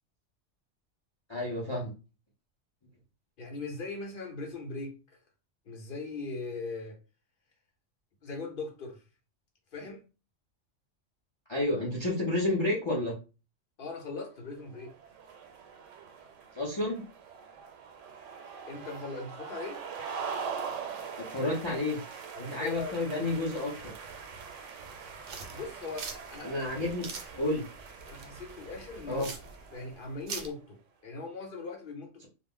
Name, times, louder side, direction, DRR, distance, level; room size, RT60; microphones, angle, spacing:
voice 1, 1.3-1.9 11.5-13.2 16.5-17.0 21.2-22.0 22.4-23.7 26.4-27.1 27.4-27.6 29.1-29.3, left 2 dB, 35° left, 0.4 m, -30 dB
voice 2, 3.4-5.2 5.7-7.0 8.2-9.0 9.7-10.0 13.8-14.9 18.7-19.8 22.3-23.2 25.5-26.6 27.3-27.4 28.1-29.4 29.7-32.3, left 3 dB, 50° left, 0.8 m, -40 dB
sound 1, 14.6-30.3, right 6 dB, 85° right, 0.9 m, -43 dB
sound 2, 25.3-30.5, right 5 dB, 60° right, 0.6 m, -43 dB
2.3 x 2.0 x 3.6 m
omnidirectional pair, 1.3 m